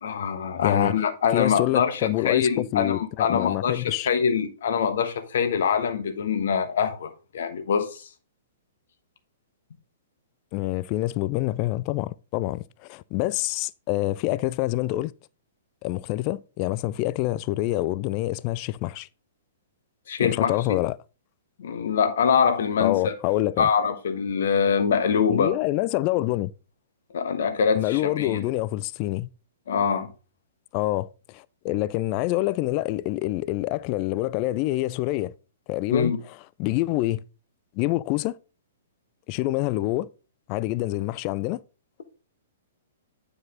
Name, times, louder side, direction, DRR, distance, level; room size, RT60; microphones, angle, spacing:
voice 1, 0.0-8.1 20.1-20.5 21.6-23.1 23.6-25.5 27.1-28.4 29.7-30.1 35.9-36.2, left 6 dB, 60° left, 1.2 m, -24 dB
voice 2, 0.6-1.0 1.3-4.1 10.5-15.1 15.8-19.1 20.2-21.0 22.8-23.7 25.3-26.5 27.7-29.3 30.7-35.3 35.7-36.1 36.6-37.2 37.8-38.4 39.3-40.1 40.5-41.6, left 17 dB, 35° left, 0.3 m, -26 dB
9.4 x 4.9 x 3.8 m
figure-of-eight pair, 110°, 0 cm